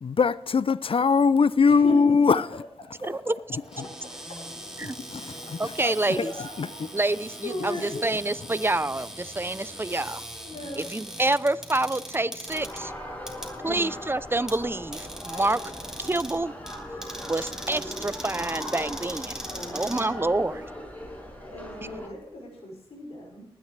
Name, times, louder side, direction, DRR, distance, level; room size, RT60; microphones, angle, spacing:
voice 1, 0.0-2.5 4.8-5.9 6.6-6.7, left 5 dB, 65° left, 0.5 m, -22 dB
voice 2, 1.6-2.0 2.3-2.4 3.0-3.3 3.7-4.7 5.2-5.7 6.1-6.8 7.4-8.0 10.4-10.9 13.6-13.8 19.5-20.6 21.5-23.5, left 1 dB, 85° left, 5.8 m, -38 dB
Cupboard open or close, 3.6-20.7, equal, 5° right, 4.0 m, -41 dB
voice 3, 5.6-6.3 6.9-7.8 8.0-10.2 10.8-12.9 13.6-15.6 16.0-16.5 17.3-19.4 19.7-20.6, right 2 dB, 20° right, 0.7 m, -27 dB
sound 1, 12.5-22.1, left 1 dB, 15° left, 5.7 m, -39 dB
20.0 x 10.5 x 3.4 m
cardioid pair, 40°, 10 cm